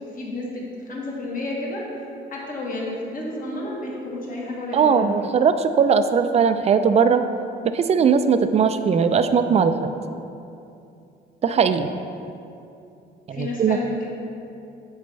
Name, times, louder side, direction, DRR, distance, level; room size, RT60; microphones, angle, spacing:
voice 1, 0.1-0.6 0.9-1.8 2.3-5.1 13.3-14.1, left 2 dB, 45° left, -3 dB, 1.4 m, -31 dB
voice 2, 4.7-7.2 7.7-9.9 11.4-11.9 13.3-13.8, right 6 dB, 35° right, 9 dB, 0.3 m, -19 dB
8.6 x 4.1 x 3.3 m, 2.7 s
cardioid pair, 90°, 20 cm